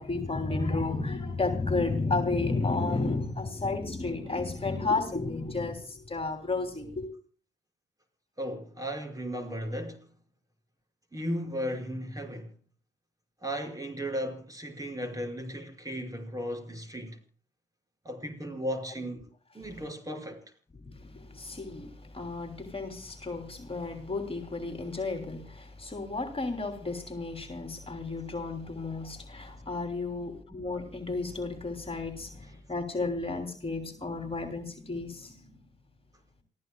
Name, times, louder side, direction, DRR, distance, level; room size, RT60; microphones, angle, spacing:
voice 1, 0.0-7.1 20.8-35.6, left 3 dB, 30° left, 3.1 m, -32 dB
voice 2, 8.4-10.1 11.1-12.5 13.4-17.2 18.0-19.3 19.5-20.4, equal, 20° right, 5.5 m, -35 dB
28.5 x 16.0 x 2.3 m
supercardioid pair, 50°, 19 cm